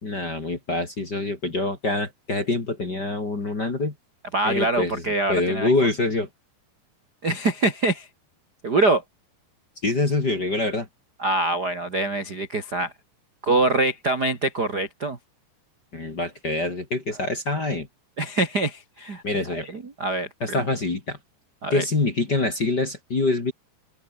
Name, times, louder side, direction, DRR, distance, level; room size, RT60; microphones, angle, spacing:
voice 1, 0.0-3.9 4.4-5.0 5.3-6.3 9.8-10.9 15.9-17.9 19.2-19.7 20.4-21.2 21.7-23.5, left 2 dB, 25° left, 2.6 m, -25 dB
voice 2, 4.3-5.7 7.2-8.1 8.6-9.0 11.2-12.9 13.4-15.2 18.2-19.2 19.5-20.3 21.6-21.8, right 2 dB, 35° right, 1.7 m, -24 dB
open air
omnidirectional pair, 5.4 m